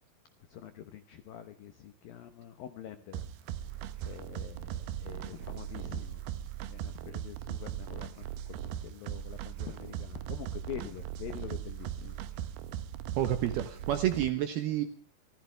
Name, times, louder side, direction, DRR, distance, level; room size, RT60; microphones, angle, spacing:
voice 1, 0.5-6.2 6.7-12.2, left 10 dB, 85° left, 9 dB, 2.0 m, -46 dB
sound 1, 3.1-14.3, right 11 dB, 90° right, 2.2 m, -39 dB
voice 2, 13.2-14.9, right 12 dB, 75° right, 8 dB, 2.4 m, -29 dB
26.5 x 15.0 x 3.4 m, 0.42 s
omnidirectional pair, 5.9 m